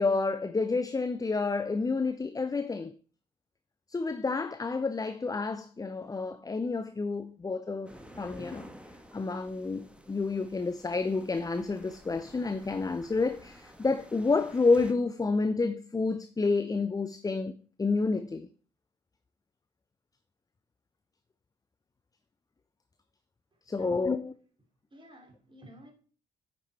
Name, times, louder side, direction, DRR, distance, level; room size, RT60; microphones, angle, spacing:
voice 1, 0.0-2.9 3.9-8.7 9.1-17.5 17.8-18.5 23.7-24.3, left 3 dB, 15° left, 0.6 m, -29 dB
sound 1, 7.9-14.9, equal, 5° right, 1.3 m, -51 dB
voice 2, 23.8-24.2 24.9-25.9, right 1 dB, 25° right, 2.9 m, -51 dB
9.3 x 5.3 x 4.3 m
figure-of-eight pair, 45°, 21 cm